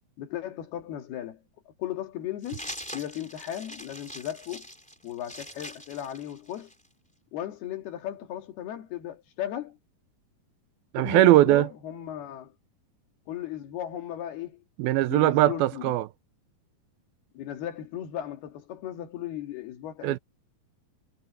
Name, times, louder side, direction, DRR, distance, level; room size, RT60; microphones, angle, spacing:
voice 1, 0.2-1.4 1.8-4.7 5.0-6.7 7.3-9.8 11.0-12.5 13.3-14.6 15.1-15.9 17.4-20.2, left 11 dB, 80° left, 4.1 m, -36 dB
sound 1, 2.4-6.9, equal, ahead, 2.9 m, -43 dB
voice 2, 10.9-11.7 14.8-16.1 20.0-20.2, right 15 dB, 80° right, 2.4 m, -20 dB
omnidirectional pair, 4.4 m